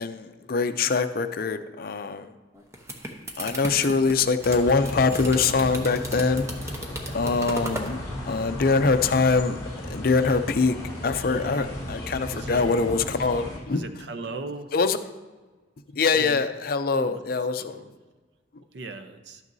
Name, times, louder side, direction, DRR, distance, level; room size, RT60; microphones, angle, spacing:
voice 1, 0.0-2.3 3.4-6.5 7.1-9.6 9.9-10.8 11.0-13.8 14.7-15.0 15.9-17.8, left 4 dB, 50° left, 9 dB, 0.5 m, -23 dB
sound 1, 2.5-7.9, right 1 dB, 15° right, 0.8 m, -36 dB
sound 2, 4.4-13.6, left 1 dB, 20° left, 2.4 m, -35 dB
voice 2, 13.7-14.7 16.1-16.4 16.9-17.2 17.6-17.9 18.7-19.4, right 3 dB, 60° right, 8 dB, 0.7 m, -37 dB
12.0 x 9.1 x 2.7 m, 1.3 s
head